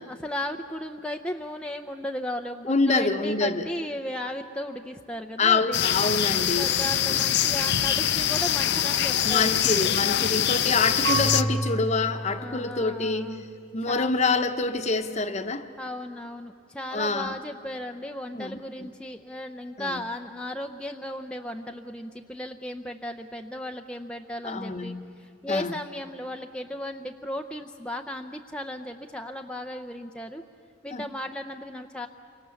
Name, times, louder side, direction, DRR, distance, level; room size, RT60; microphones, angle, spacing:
voice 1, 0.0-5.8 6.5-9.6 10.0-10.3 10.6-10.7 12.4-13.4 13.9-14.1 15.8-30.4 30.8-32.1, left 1 dB, 5° left, 3 dB, 0.6 m, -35 dB
voice 2, 2.6-3.6 5.4-6.7 7.1-7.2 9.2-13.3 13.7-15.7 16.9-17.3 18.3-18.9 19.8-20.0 24.4-25.0 25.5-25.7 30.9-31.0, left 3 dB, 35° left, 8 dB, 1.0 m, -26 dB
sound 1, 5.7-11.4, left 10 dB, 55° left, 0.6 m, -24 dB
Marimba xylophone / Wood, 11.0-13.9, right 3 dB, 85° right, 3.2 m, -31 dB
28.5 x 25.0 x 7.0 m, 2.7 s
head